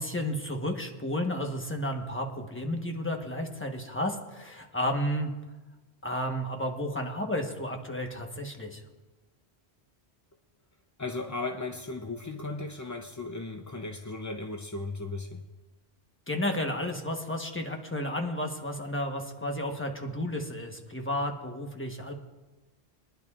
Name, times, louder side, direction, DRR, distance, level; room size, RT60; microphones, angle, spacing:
voice 1, 0.0-5.3 6.0-8.8 16.3-22.1, left 1 dB, 10° left, 2 dB, 1.0 m, -32 dB
voice 2, 11.0-15.4, left 3 dB, 30° left, 4 dB, 0.3 m, -36 dB
23.5 x 10.5 x 2.4 m, 1.2 s
omnidirectional pair, 1.1 m